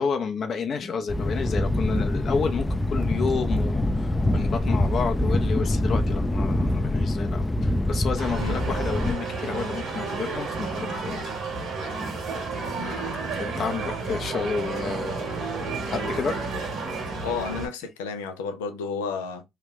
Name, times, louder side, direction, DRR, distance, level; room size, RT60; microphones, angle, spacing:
voice 1, 0.0-11.3 13.4-15.3 15.9-16.4, left 5 dB, 55° left, 0.7 m, -30 dB
Thunder, 1.1-9.1, left 1 dB, 15° left, 0.5 m, -25 dB
sound 1, 8.2-17.7, right 3 dB, 65° right, 1.6 m, -31 dB
voice 2, 12.8-13.2 17.2-19.4, left 5 dB, 90° left, 0.5 m, -32 dB
3.2 x 2.4 x 3.5 m
hypercardioid pair, 55°, 0 cm